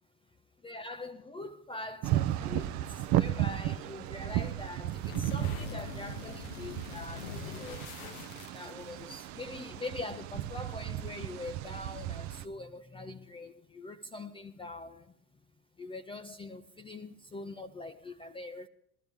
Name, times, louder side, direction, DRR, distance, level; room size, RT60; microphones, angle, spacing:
voice 1, 0.6-2.7 3.1-7.9 8.5-15.0 15.8-18.7, left 2 dB, 10° left, 0.6 m, -43 dB
sound 1, 2.0-12.5, right 13 dB, 40° right, 0.6 m, -34 dB
sound 2, 4.9-9.1, left 7 dB, 65° left, 0.9 m, -44 dB
21.0 x 13.5 x 3.5 m
figure-of-eight pair, 75°, 45 cm